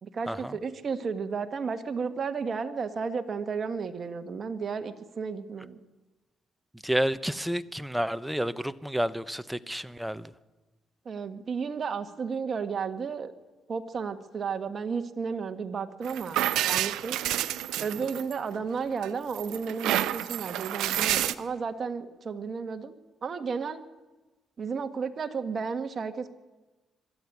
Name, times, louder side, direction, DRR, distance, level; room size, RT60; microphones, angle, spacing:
voice 1, 0.0-5.8 11.0-13.3 13.7-16.4 16.7-17.2 17.8-22.9 23.2-23.8 24.6-26.3, right 5 dB, 45° right, 7 dB, 1.7 m, -33 dB
voice 2, 6.8-10.3, right 1 dB, 5° right, 14 dB, 0.9 m, -30 dB
sound 1, 16.0-18.6 19.0-21.3, right 13 dB, 90° right, 0.8 m, -29 dB
23.0 x 13.0 x 9.5 m, 1.2 s
cardioid pair, 90°, 0 cm